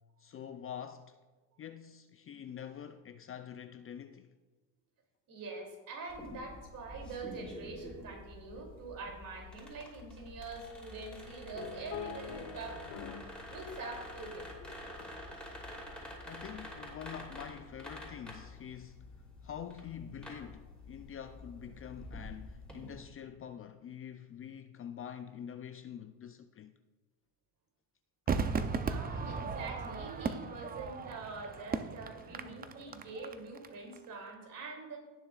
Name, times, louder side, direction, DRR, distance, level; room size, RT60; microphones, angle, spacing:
voice 1, 0.2-1.2 1.6-4.3 16.3-26.8, left 9 dB, 35° left, 0.4 m, -46 dB
voice 2, 5.3-12.8 13.5-14.5 15.0-15.2 28.9-35.0, right 3 dB, 50° right, 2.9 m, -44 dB
sound 1, 6.1-23.0, left 1 dB, 5° left, 3.1 m, -48 dB
sound 2, 11.5-13.4 13.7-15.3 15.8-16.0, left 9 dB, 65° left, 1.1 m, -45 dB
Crowd / Fireworks, 28.3-33.7 33.9-34.0, right 5 dB, 20° right, 0.5 m, -36 dB
17.5 x 6.9 x 2.4 m
cardioid pair, 115°, 41 cm